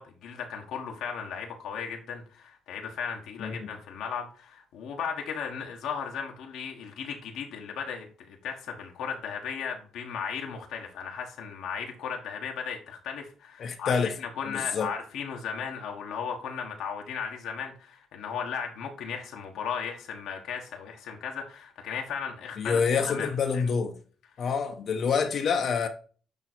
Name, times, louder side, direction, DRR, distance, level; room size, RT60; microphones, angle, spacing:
voice 1, 0.0-23.7 24.4-24.5, left 7 dB, 85° left, 1.5 m, -36 dB
voice 2, 3.4-3.7 13.6-14.1 14.4-14.9 22.6-23.9 24.4-25.9, left 5 dB, 60° left, 1.1 m, -27 dB
8.9 x 3.1 x 4.5 m
cardioid pair, 90°, 0 cm